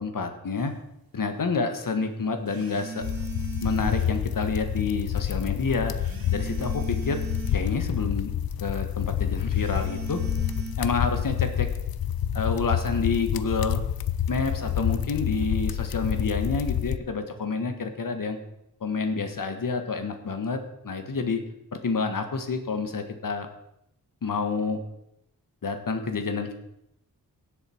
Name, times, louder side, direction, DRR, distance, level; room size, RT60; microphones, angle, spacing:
voice 1, 0.0-0.7 1.1-3.0 3.6-5.9 6.3-7.2 7.5-8.3 8.6-10.2 10.8-11.7 12.3-13.8 14.3-18.4 18.8-21.4 21.7-23.5 24.2-24.8 25.6-26.5, left 4 dB, 65° left, 6 dB, 1.6 m, -28 dB
sound 1, 0.5-0.7 2.5-4.2 6.0-7.7 9.5-10.7, right 5 dB, 80° right, 2.4 m, -38 dB
sound 2, 3.0-17.0, left 10 dB, 90° left, 0.6 m, -28 dB
17.0 x 7.7 x 4.5 m, 0.80 s
wide cardioid pair, 75°, 35 cm